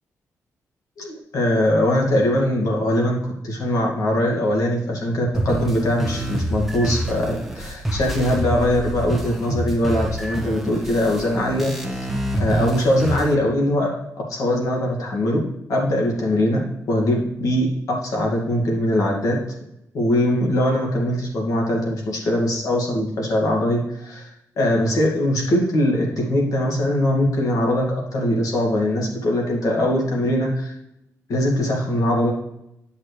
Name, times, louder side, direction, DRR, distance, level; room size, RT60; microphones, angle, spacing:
voice 1, 1.0-12.1 12.4-14.0 14.3-15.4 15.7-19.4 19.9-24.3 24.6-30.7 31.3-32.3, left 1 dB, 75° left, -1 dB, 2.1 m, -21 dB
sound 1, 5.3-13.3, right 1 dB, 5° right, 1.1 m, -27 dB
10.0 x 5.9 x 3.3 m, 0.81 s
wide cardioid pair, 115°, 6 cm